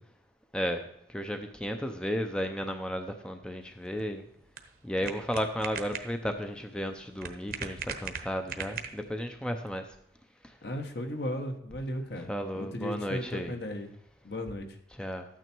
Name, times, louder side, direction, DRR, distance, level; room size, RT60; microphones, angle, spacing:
voice 1, 0.5-0.8 1.1-4.3 4.8-9.9 10.4-10.5 12.3-13.5 14.9-15.3, equal, 5° left, 5 dB, 0.6 m, -34 dB
sound 1, 3.6-9.3, right 6 dB, 50° right, 1.0 m, -41 dB
voice 2, 10.6-13.9 14.2-14.7, left 1 dB, 60° left, 5 dB, 1.4 m, -36 dB
13.0 x 9.1 x 4.6 m, 0.76 s
head